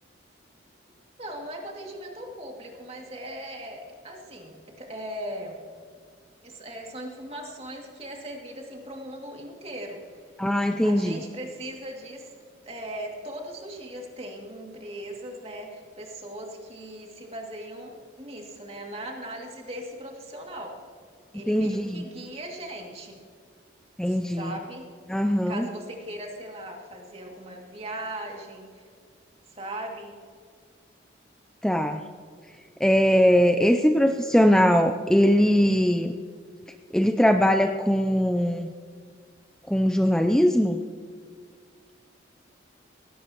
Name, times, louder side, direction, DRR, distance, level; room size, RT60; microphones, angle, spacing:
voice 1, 1.2-5.6 6.4-10.2 10.8-20.8 21.3-23.2 24.1-24.9 25.5-28.8 29.5-30.1, right 1 dB, 35° right, 0 dB, 2.4 m, -39 dB
voice 2, 10.4-11.2 21.5-22.0 24.0-24.6 25.1-25.7 31.6-32.0 32.8-36.2 36.9-38.7 39.7-40.8, equal, 5° left, 6 dB, 0.4 m, -21 dB
18.5 x 17.0 x 3.0 m, 2.1 s
head